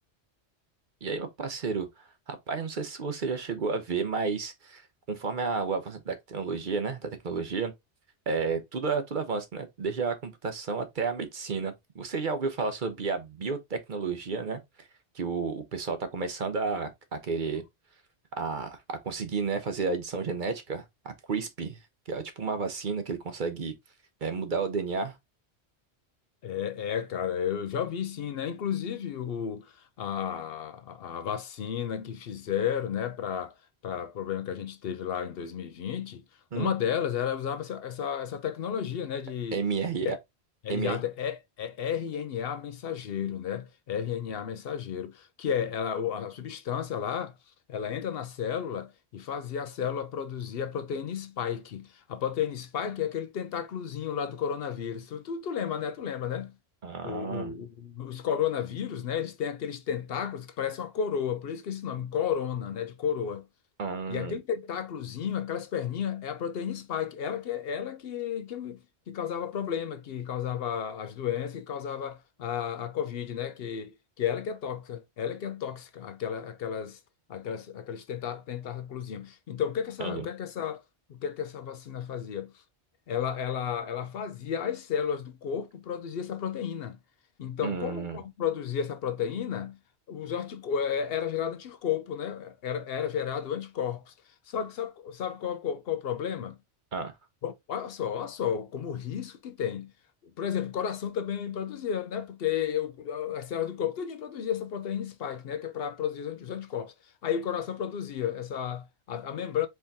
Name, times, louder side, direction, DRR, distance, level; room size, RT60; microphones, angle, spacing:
voice 1, 1.0-1.9 2.3-4.8 5.1-7.7 8.3-14.6 15.1-17.6 18.4-21.8 22.1-23.7 24.2-25.1 36.5-36.7 39.5-40.2 40.7-41.0 56.8-57.5 63.8-64.4 80.0-80.3 87.6-88.2 96.9-97.1, right 4 dB, 50° right, 0.9 m, -31 dB
voice 2, 26.4-33.5 33.8-36.2 36.5-39.6 40.0-40.1 40.6-47.3 47.7-56.5 57.0-63.5 64.1-68.8 69.1-77.0 77.3-80.8 81.1-82.5 83.1-87.0 87.4-89.8 90.1-94.1 94.5-96.6 97.4-99.9 100.4-106.9 107.2-109.7, left 8 dB, 65° left, 0.8 m, -32 dB
4.5 x 3.5 x 2.7 m
omnidirectional pair, 1.1 m